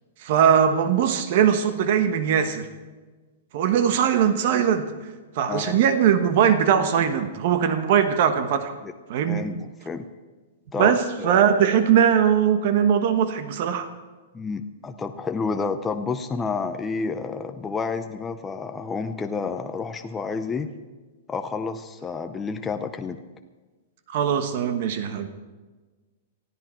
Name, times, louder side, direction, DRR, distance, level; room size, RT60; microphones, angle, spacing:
voice 1, 0.2-2.7 3.5-4.9 5.3-8.7 9.1-9.4 10.8-13.9 24.1-25.3, right 8 dB, 45° right, 9 dB, 1.2 m, -20 dB
voice 2, 5.5-5.8 8.8-8.9 9.2-10.0 10.7-11.6 14.3-20.7 21.3-23.2, left 4 dB, 10° left, 7 dB, 0.5 m, -30 dB
19.5 x 14.5 x 4.5 m, 1.3 s
supercardioid pair, 175°, 0 cm